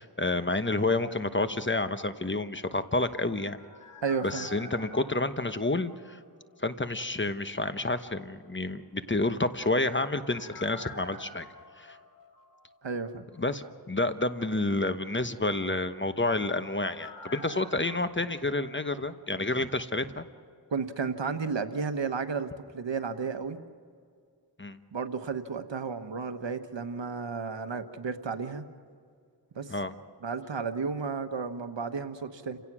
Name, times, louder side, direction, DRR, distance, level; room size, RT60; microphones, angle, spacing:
voice 1, 0.0-3.6 4.2-6.2 6.6-11.5 11.8-12.0 13.4-20.2 24.6-24.8 29.7-29.9, left 2 dB, 25° left, 10 dB, 1.1 m, -29 dB
sound 1, 2.9-6.6 6.9-7.0 9.4-13.1 13.3-13.4 15.7-19.6 19.8-19.9, left 3 dB, 45° left, 3.1 m, -49 dB
voice 2, 4.0-4.5 12.8-13.2 20.7-23.6 24.9-28.6 29.5-29.7 30.2-32.6, right 5 dB, 80° right, 8 dB, 1.3 m, -33 dB
29.5 x 17.5 x 6.2 m, 2.2 s
wide cardioid pair, 50°, 43 cm